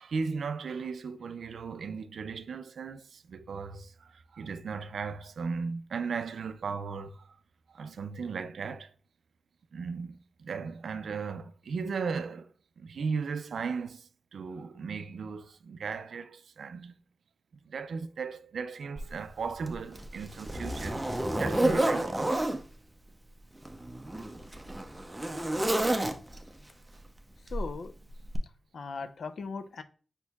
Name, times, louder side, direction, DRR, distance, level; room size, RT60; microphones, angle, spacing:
voice 1, 0.0-7.3 7.7-8.9 9.7-16.9 17.6-21.0 21.4-22.4, right 5 dB, 90° right, 0.3 m, -36 dB
Zipper (clothing), 19.0-19.1 19.7-22.6 23.6-26.5 27.5-27.7 28.3-28.4, right 1 dB, 15° right, 0.5 m, -30 dB
voice 2, 27.5-27.9 28.7-29.8, left 4 dB, 75° left, 0.5 m, -38 dB
5.3 x 4.3 x 2.3 m
wide cardioid pair, 90°, 0 cm